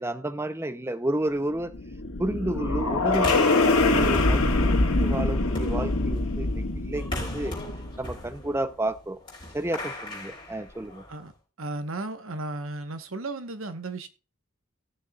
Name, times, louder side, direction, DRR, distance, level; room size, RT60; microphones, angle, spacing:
voice 1, 0.0-1.7 2.2-3.5 3.8-7.6 8.0-9.2 9.5-11.0, right 1 dB, 10° right, 0.6 m, -31 dB
sound 1, 1.6-8.0, left 2 dB, 90° left, 1.7 m, -24 dB
sound 2, 3.2-11.3, left 1 dB, 25° left, 3.7 m, -38 dB
voice 2, 11.6-14.1, right 2 dB, 70° right, 1.1 m, -34 dB
17.0 x 6.9 x 2.3 m
head